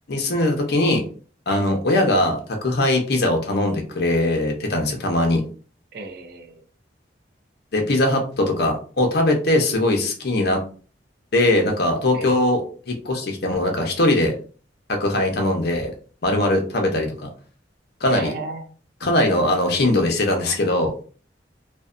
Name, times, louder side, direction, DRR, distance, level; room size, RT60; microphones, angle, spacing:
voice 1, 0.1-1.0 1.5-5.4 7.7-10.6 11.3-14.4 14.9-15.9 16.2-17.3 18.0-18.3 19.0-20.9, left 1 dB, 60° left, 3 dB, 0.6 m, -21 dB
voice 2, 5.9-6.6 12.1-12.3 18.1-18.7, right 3 dB, 55° right, 5 dB, 0.5 m, -34 dB
2.5 x 2.1 x 2.4 m, 0.40 s
head